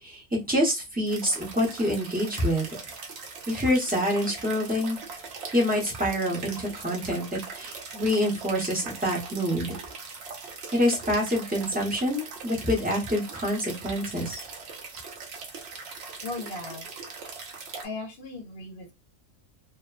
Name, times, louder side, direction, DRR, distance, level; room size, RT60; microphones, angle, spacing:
voice 1, 0.0-2.7 3.5-5.0 5.5-9.7 10.7-14.4, equal, 10° right, 0.6 m, -26 dB
sound 1, 1.1-17.9, right 4 dB, 60° right, 0.8 m, -41 dB
voice 2, 16.2-16.9 17.8-18.9, left 3 dB, 60° left, 0.7 m, -37 dB
2.7 x 2.1 x 2.3 m
omnidirectional pair, 1.5 m